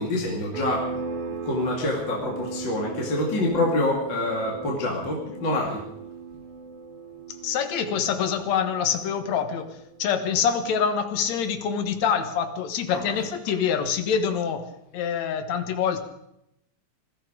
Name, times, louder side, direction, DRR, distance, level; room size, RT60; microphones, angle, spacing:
voice 1, 0.0-5.8 12.9-13.2, left 2 dB, 35° left, -1 dB, 2.8 m, -27 dB
sound 1, 0.5-10.9, right 4 dB, 65° right, 3.6 m, -38 dB
voice 2, 5.0-5.5 7.4-14.7 14.9-16.0, left 7 dB, 65° left, 7 dB, 2.5 m, -26 dB
20.0 x 14.0 x 5.1 m, 0.80 s
omnidirectional pair, 3.7 m